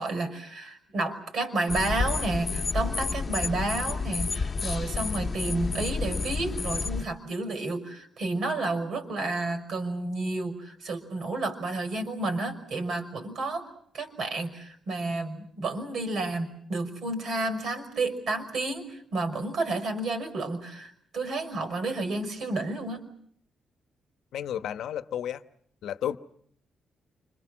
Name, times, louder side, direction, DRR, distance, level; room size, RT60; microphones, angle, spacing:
voice 1, 0.0-13.7 13.9-23.0, right 2 dB, 55° right, 5.5 m, -31 dB
sound 1, 1.7-7.1, left 4 dB, 25° left, 1.3 m, -30 dB
voice 2, 24.3-25.4 25.8-26.2, left 10 dB, 75° left, 1.1 m, -32 dB
30.0 x 26.5 x 6.3 m
wide cardioid pair, 170°, 0 cm